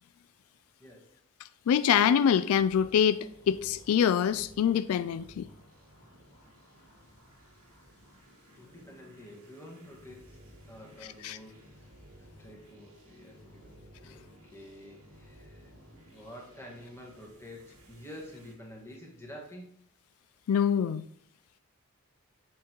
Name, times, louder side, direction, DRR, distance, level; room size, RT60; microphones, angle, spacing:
voice 1, 0.8-1.2 8.6-11.9 12.2-14.2 14.5-15.8 16.1-19.8, equal, 10° left, 1.7 m, -49 dB
voice 2, 1.7-5.5 11.2-11.4 20.5-21.1, left 8 dB, 80° left, 0.3 m, -25 dB
sound 1, 2.5-18.5, equal, 90° right, 1.9 m, -56 dB
8.0 x 7.3 x 3.0 m
head